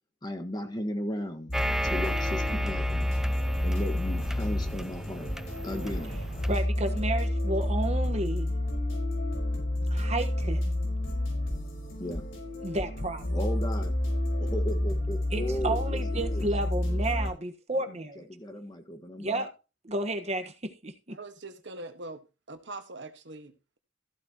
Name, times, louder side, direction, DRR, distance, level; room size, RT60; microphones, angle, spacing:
voice 1, 0.2-1.5 1.8-3.1 3.6-5.3 5.6-6.2 12.0-12.3 13.3-13.9 14.4-16.5 17.7-17.8 18.2-19.4, left 1 dB, 20° left, 1.5 m, -35 dB
sound 1, 1.5-17.3, left 1 dB, 80° left, 4.8 m, -29 dB
sound 2, 1.5-6.6, right 1 dB, 5° right, 0.6 m, -35 dB
voice 2, 6.5-8.5 9.9-10.7 12.6-13.4 15.3-18.3 19.2-19.5 19.8-20.9, right 2 dB, 35° right, 1.3 m, -32 dB
voice 3, 21.1-22.2 22.5-23.8, right 2 dB, 65° right, 1.4 m, -42 dB
14.5 x 8.6 x 2.9 m
head